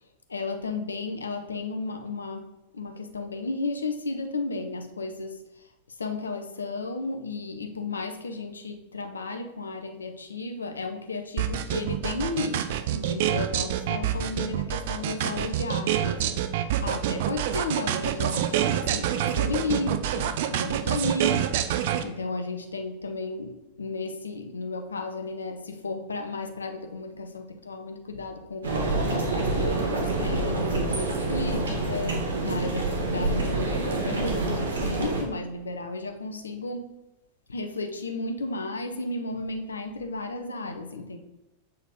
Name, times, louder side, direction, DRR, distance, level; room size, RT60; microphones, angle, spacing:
voice 1, 0.3-5.7 6.0-37.0 37.5-41.2, left 3 dB, 75° left, 6 dB, 0.8 m, -34 dB
sound 1, 11.4-22.0, right 11 dB, 50° right, 0.5 m, -26 dB
sound 2, 28.6-35.2, right 2 dB, 70° right, 1.5 m, -27 dB
7.0 x 4.0 x 5.1 m, 0.97 s
figure-of-eight pair, 90°, 0 cm